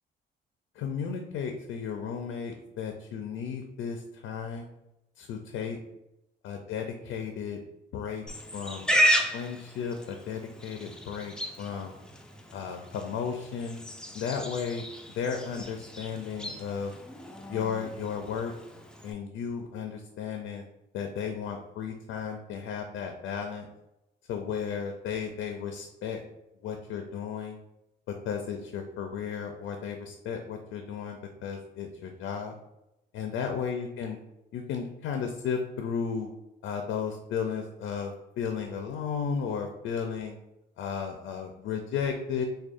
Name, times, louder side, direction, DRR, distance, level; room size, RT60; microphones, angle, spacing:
voice 1, 0.8-4.7 5.2-5.8 6.4-7.6 7.9-8.2 8.5-9.0 9.3-12.0 12.5-13.8 14.1-14.8 15.2-16.9 17.5-18.5 19.0-20.6 20.9-23.7 24.3-26.2 26.6-27.6 28.2-32.5 33.1-34.2 34.5-36.3 36.6-40.4 40.8-42.4, left 6 dB, 80° left, 4 dB, 0.5 m, -34 dB
Livestock farm animals working animals, 8.3-19.1, equal, 5° left, 0.4 m, -33 dB
4.7 x 2.3 x 2.5 m, 0.89 s
cardioid pair, 90°, 20 cm